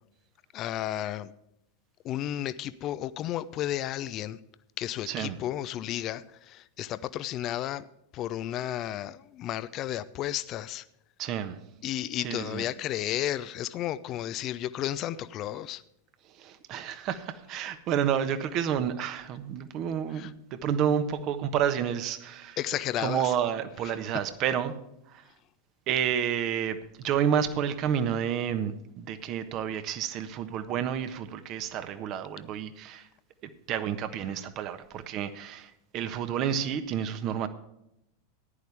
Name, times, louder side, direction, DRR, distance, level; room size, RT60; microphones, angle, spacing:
voice 1, 0.5-1.3 2.0-4.4 4.8-7.8 8.1-10.8 11.8-15.8 20.2-20.3 22.6-23.2, left 12 dB, 40° left, 0.6 m, -33 dB
voice 2, 5.1-5.4 11.2-11.6 12.2-12.7 16.3-22.6 23.0-24.7 25.1-25.2 25.9-33.1 33.7-37.5, right 8 dB, 45° right, 1.2 m, -30 dB
14.5 x 10.5 x 3.5 m
figure-of-eight pair, 90°, 0 cm